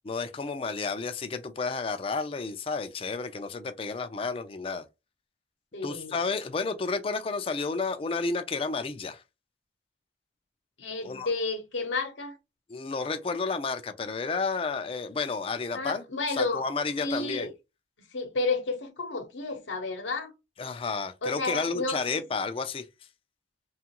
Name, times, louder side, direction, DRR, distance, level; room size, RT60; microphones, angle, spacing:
voice 1, 0.0-4.8 5.8-9.2 11.0-11.3 12.7-16.0 16.3-17.5 20.6-22.9, left 4 dB, 30° left, 0.3 m, -31 dB
voice 2, 5.7-6.1 10.8-12.4 15.7-16.6 17.0-17.5 18.1-20.3 21.2-22.0, left 3 dB, 80° left, 0.8 m, -31 dB
2.9 x 2.4 x 2.8 m
head